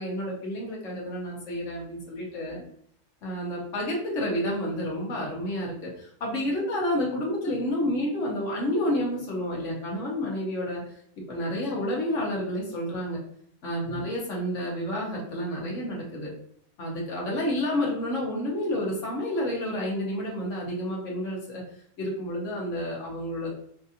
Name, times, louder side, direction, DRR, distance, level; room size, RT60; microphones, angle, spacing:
voice 1, 0.0-2.6 3.2-10.8 11.3-13.2 13.6-16.3 16.8-21.6 22.0-23.5, left 1 dB, 55° left, -3 dB, 1.5 m, -30 dB
5.4 x 2.5 x 2.7 m, 0.66 s
omnidirectional pair, 1.6 m